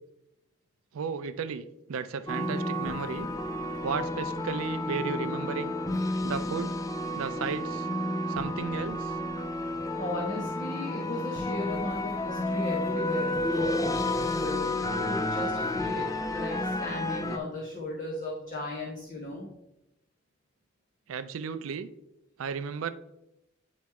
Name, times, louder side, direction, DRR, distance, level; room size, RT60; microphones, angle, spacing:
voice 1, 0.9-3.3 3.8-5.7 6.2-6.7 7.2-7.9 8.3-9.2 21.1-21.9 22.4-22.9, right 6 dB, 80° right, 11 dB, 0.4 m, -34 dB
sound 1, 2.3-17.4, left 1 dB, 15° left, 0.4 m, -31 dB
voice 2, 9.9-19.5, left 1 dB, 40° left, -3 dB, 1.1 m, -36 dB
9.3 x 3.1 x 4.7 m, 0.89 s
head